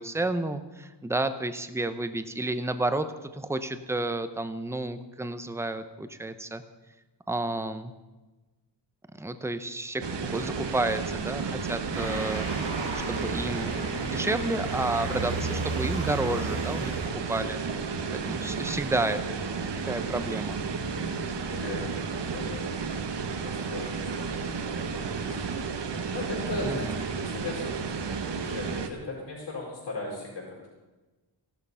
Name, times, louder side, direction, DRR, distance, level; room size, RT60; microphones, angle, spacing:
voice 1, 0.0-6.6 7.3-7.9 9.2-12.5 12.9-13.7 14.0-16.9 17.3-17.6 18.3-19.2 19.8-20.6 26.6-27.0, right 2 dB, 5° right, 10 dB, 0.7 m, -31 dB
sound 1, 10.0-28.9, right 5 dB, 65° right, 1.3 m, -32 dB
Motor vehicle (road) / Siren, 11.9-17.1, right 3 dB, 80° right, 4.6 m, -34 dB
voice 2, 21.5-21.9 22.3-22.7 23.4-24.7 25.1-25.4 25.8-30.7, left 2 dB, 65° left, -4 dB, 5.4 m, -38 dB
15.5 x 12.0 x 5.6 m, 1.2 s
wide cardioid pair, 145°, 45 cm